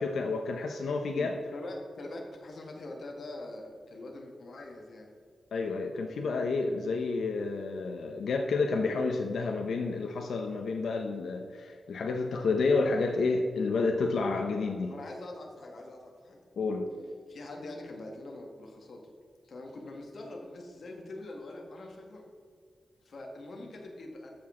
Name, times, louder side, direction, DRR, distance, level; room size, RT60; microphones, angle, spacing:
voice 1, 0.0-1.4 5.5-14.9 16.6-16.9, left 3 dB, 85° left, 3 dB, 0.7 m, -30 dB
voice 2, 1.1-5.1 14.9-16.4 17.3-19.0 19.4-22.3 23.0-24.3, left 2 dB, 55° left, 1 dB, 1.5 m, -43 dB
13.5 x 6.2 x 3.7 m, 2.2 s
wide cardioid pair, 130°, 0 cm